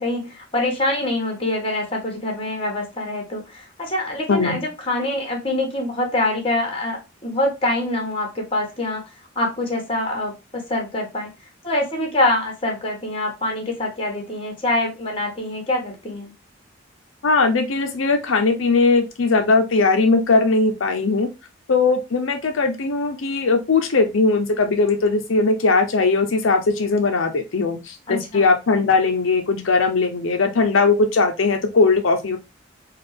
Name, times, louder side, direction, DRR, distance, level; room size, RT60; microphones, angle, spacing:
voice 1, 0.0-11.3 11.6-16.3 28.1-28.5, left 1 dB, 30° left, 2 dB, 1.3 m, -25 dB
voice 2, 4.3-4.6 17.2-21.3 21.7-32.4, left 3 dB, 85° left, 5 dB, 0.6 m, -19 dB
4.1 x 2.4 x 3.3 m, 0.26 s
head